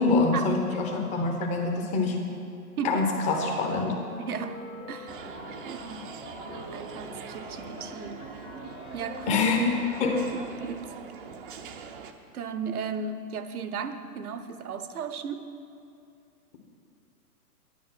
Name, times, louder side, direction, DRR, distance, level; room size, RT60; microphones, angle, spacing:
voice 1, 0.0-2.2 2.8-3.9 9.3-9.7 10.0-10.2, left 3 dB, 15° left, 2 dB, 1.0 m, -25 dB
sound 1, 2.8-10.1, left 1 dB, 45° left, 2.1 m, -45 dB
voice 2, 4.2-6.2 6.5-8.2 8.9-9.4 10.3-11.2 11.6-12.0 12.3-15.5, right 6 dB, 65° right, 11 dB, 1.0 m, -36 dB
sound 2, 5.1-12.1, right 5 dB, 35° right, 0.7 m, -43 dB
10.5 x 9.3 x 6.0 m, 2.6 s
hypercardioid pair, 140°, 48 cm